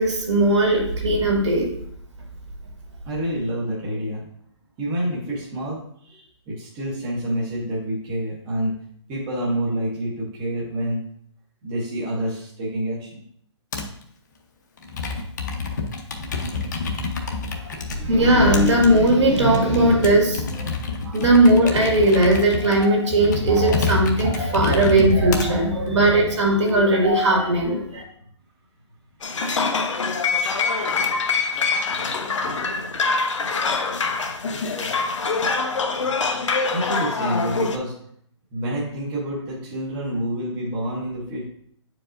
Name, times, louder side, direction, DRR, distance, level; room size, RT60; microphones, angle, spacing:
voice 1, 0.0-1.7 17.6-20.7 21.0-28.0, right 1 dB, 70° right, -1 dB, 2.0 m, -18 dB
voice 2, 3.1-4.3 4.8-8.7 9.1-11.0 11.6-13.2 36.7-37.9 38.5-41.5, right 1 dB, 10° right, -6 dB, 0.7 m, -28 dB
Computer keyboard, 13.7-14.0 14.8-18.0 18.5-25.5 26.1-26.7, left 4 dB, 40° left, 0.7 m, -29 dB
sound 1, 29.2-37.8, left 4 dB, 85° left, 0.8 m, -24 dB
8.4 x 4.7 x 2.5 m, 0.66 s
hypercardioid pair, 180°, 15 cm